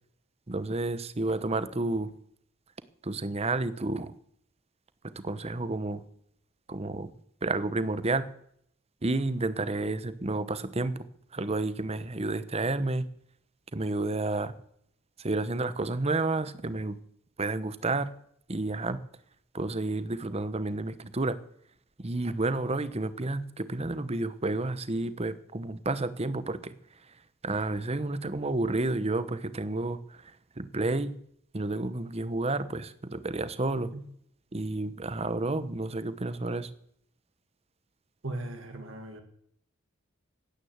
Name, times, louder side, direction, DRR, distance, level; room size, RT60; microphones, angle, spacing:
voice 1, 0.5-2.1 3.0-4.1 5.2-6.0 6.7-7.1 7.4-8.3 9.0-11.1 11.3-13.1 13.7-14.5 15.2-17.0 17.4-18.1 18.5-19.0 19.5-21.4 22.0-26.7 27.4-31.1 31.5-33.9 34.5-36.7, right 2 dB, 30° right, 14 dB, 0.9 m, -30 dB
voice 2, 38.2-39.2, right 2 dB, 65° right, 5 dB, 2.0 m, -38 dB
16.5 x 9.7 x 8.1 m, 0.69 s
head